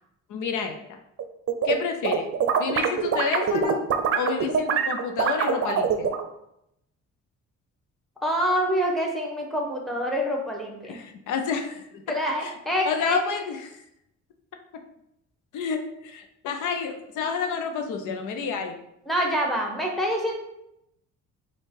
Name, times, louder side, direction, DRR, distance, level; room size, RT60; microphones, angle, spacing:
voice 1, 0.3-1.0 1.6-2.3 2.6-3.8 4.1-6.1 10.8-12.5 12.9-13.8 15.5-18.8, left 6 dB, 80° left, 5 dB, 0.6 m, -29 dB
sound 1, 1.2-1.7 2.0-6.2, right 7 dB, 50° right, 0.6 m, -24 dB
voice 2, 8.2-11.0 12.1-13.2 19.1-20.3, equal, ahead, 0 dB, 1.1 m, -26 dB
4.4 x 2.4 x 4.5 m, 0.81 s
cardioid pair, 90°, 30 cm